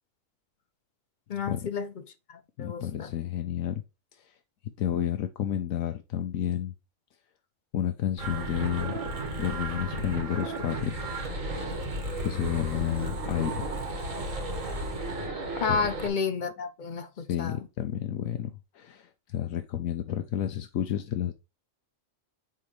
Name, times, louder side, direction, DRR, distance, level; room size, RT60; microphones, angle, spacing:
voice 1, 1.3-1.9 2.3-3.1 15.6-17.7, left 5 dB, 50° left, 0.6 m, -31 dB
voice 2, 2.6-3.8 4.1-4.3 4.8-6.7 7.7-9.0 9.4-11.0 12.2-13.7 15.7-15.9 17.2-21.3, left 11 dB, 85° left, 1.2 m, -31 dB
sound 1, 8.2-16.1, right 2 dB, 75° right, 2.0 m, -34 dB
9.5 x 3.8 x 3.2 m
omnidirectional pair, 1.4 m